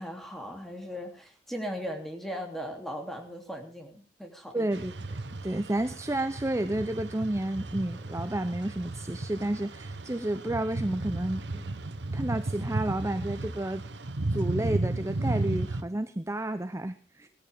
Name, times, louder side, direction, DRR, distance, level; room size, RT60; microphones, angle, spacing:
voice 1, 0.0-4.7, equal, ahead, 3 dB, 3.0 m, -38 dB
voice 2, 4.5-11.7 12.1-13.8 14.3-17.3, right 1 dB, 15° right, 10 dB, 0.7 m, -31 dB
sound 1, 4.7-15.8, right 2 dB, 75° right, 1.2 m, -34 dB
20.0 x 13.5 x 3.6 m, 0.35 s
head